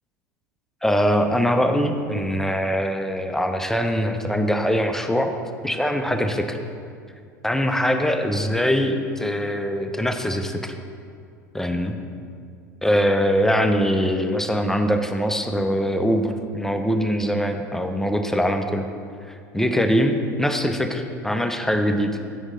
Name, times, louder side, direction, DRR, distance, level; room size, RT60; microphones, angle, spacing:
voice 1, 0.8-5.4 5.6-6.6 7.4-10.7 11.5-12.0 12.8-18.9 19.5-22.2, equal, 5° left, 6 dB, 0.5 m, -22 dB
8.4 x 6.2 x 3.8 m, 2.3 s
figure-of-eight pair, 75°, 10 cm